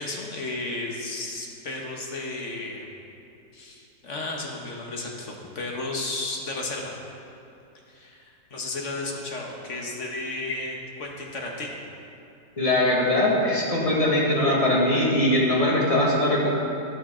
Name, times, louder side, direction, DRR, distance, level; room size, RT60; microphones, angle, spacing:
voice 1, 0.0-2.9 3.5-6.9 7.9-11.8, left 2 dB, 50° left, 0 dB, 1.5 m, -33 dB
voice 2, 12.6-16.5, left 1 dB, 20° left, -4 dB, 1.9 m, -21 dB
13.5 x 8.7 x 3.8 m, 2.8 s
omnidirectional pair, 1.8 m